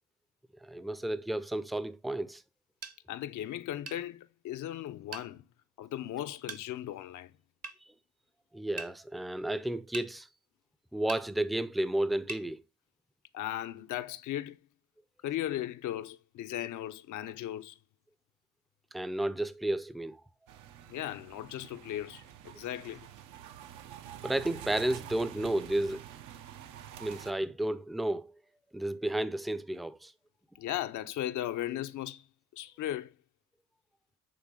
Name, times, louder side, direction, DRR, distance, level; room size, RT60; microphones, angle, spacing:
voice 1, 0.6-2.4 8.5-10.3 10.9-12.6 18.9-20.2 24.2-26.0 27.0-28.3 28.7-30.1, right 1 dB, ahead, 0.4 m, -32 dB
sound 1, 2.8-3.0 3.9-4.0 5.1-5.3 6.5-6.6 7.6-7.8 8.8-8.9 9.9-10.1 11.1-11.3 12.3-12.5, right 3 dB, 55° right, 1.0 m, -40 dB
voice 2, 3.1-5.4 5.8-7.3 13.3-14.6 15.2-17.8 20.9-23.1 30.6-32.2 32.5-33.1, left 12 dB, 75° left, 0.7 m, -37 dB
sound 2, 20.5-27.3, right 11 dB, 90° right, 0.7 m, -47 dB
8.6 x 3.5 x 3.7 m
cardioid pair, 90°, 30 cm